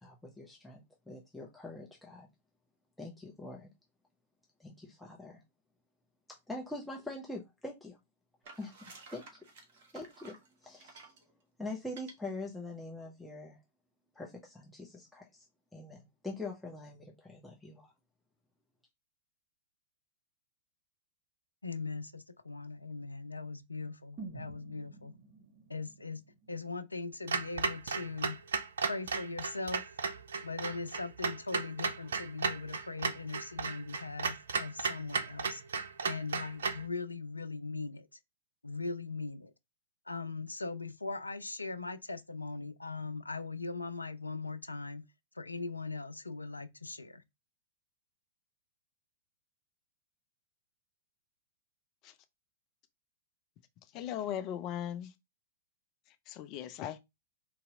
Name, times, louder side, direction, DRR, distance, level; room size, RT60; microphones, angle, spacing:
voice 1, 0.0-2.3 3.0-3.7 4.6-5.4 6.5-8.0 8.6-9.2 9.9-11.1 11.6-13.6 14.1-15.4 15.7-17.9, left 2 dB, 5° left, 0.9 m, -44 dB
sound 1, 8.4-11.2 11.8-12.1, right 3 dB, 50° right, 1.3 m, -53 dB
voice 2, 21.6-25.1 25.7-26.2 26.5-28.4 28.8-29.9 30.4-35.6 36.0-38.1 38.6-39.5 40.1-45.0 45.4-47.2, left 3 dB, 90° left, 0.4 m, -40 dB
sound 2, 24.2-28.1 28.5-28.6, right 3 dB, 25° right, 2.2 m, -51 dB
Clock, 27.3-36.9, right 5 dB, 70° right, 0.5 m, -35 dB
voice 3, 53.9-55.1 56.3-57.0, left 10 dB, 40° left, 0.5 m, -38 dB
4.0 x 2.9 x 3.7 m
figure-of-eight pair, 100°, 0 cm